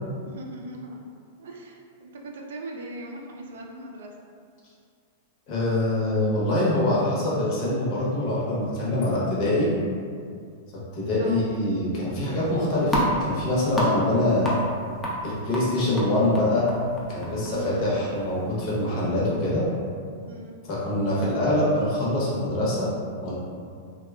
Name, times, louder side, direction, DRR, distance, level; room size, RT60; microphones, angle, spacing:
voice 1, 0.3-1.0 1.4-4.1 9.0-9.3 11.2-11.4 17.4-17.9 20.3-20.6, right 1 dB, 80° right, 0 dB, 0.3 m, -40 dB
voice 2, 5.5-9.7 10.9-14.6 15.2-16.6 17.1-19.6 20.7-22.9 23.2-23.3, left 1 dB, 40° left, -7 dB, 0.8 m, -24 dB
sound 1, 12.3-19.1, equal, 10° left, 0.4 m, -31 dB
2.6 x 2.2 x 2.3 m, 2.2 s
supercardioid pair, 145°, 0 cm